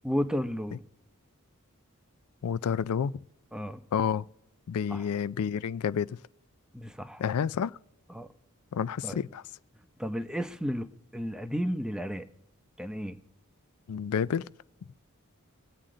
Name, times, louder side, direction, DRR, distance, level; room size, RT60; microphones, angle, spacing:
voice 1, 0.0-0.8 3.5-3.8 4.9-5.1 6.7-7.2 8.1-8.3 9.0-9.2 10.0-10.9 11.1-12.3 12.8-13.2, equal, 5° right, 0.7 m, -32 dB
voice 2, 2.4-3.1 3.9-4.2 4.7-6.2 7.2-7.8 8.7-9.4 13.9-14.5, left 7 dB, 80° left, 0.4 m, -29 dB
25.0 x 8.8 x 3.8 m
head